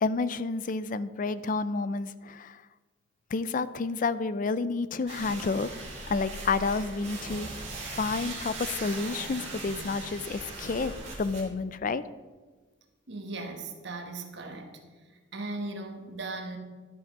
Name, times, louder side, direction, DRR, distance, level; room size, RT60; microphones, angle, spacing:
voice 1, 0.0-2.6 3.3-5.7 6.1-10.9 11.2-12.0, left 4 dB, 45° left, 15 dB, 0.4 m, -30 dB
sound 1, 5.1-11.4, right 2 dB, 35° right, 2.5 m, -39 dB
voice 2, 13.1-14.8 15.3-16.6, right 2 dB, 60° right, 4 dB, 1.3 m, -38 dB
12.0 x 6.1 x 5.3 m, 1.4 s
head